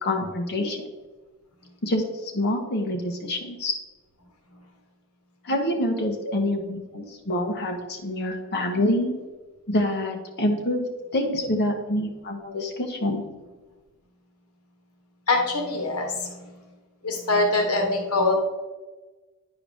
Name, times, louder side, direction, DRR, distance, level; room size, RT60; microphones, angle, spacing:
voice 1, 0.0-0.8 1.8-3.7 5.4-9.1 9.7-10.9 11.1-13.2, left 1 dB, 50° left, 2 dB, 1.3 m, -26 dB
voice 2, 15.3-16.3 17.0-18.3, left 2 dB, 90° left, 2 dB, 1.3 m, -23 dB
10.0 x 4.7 x 3.5 m, 1.2 s
head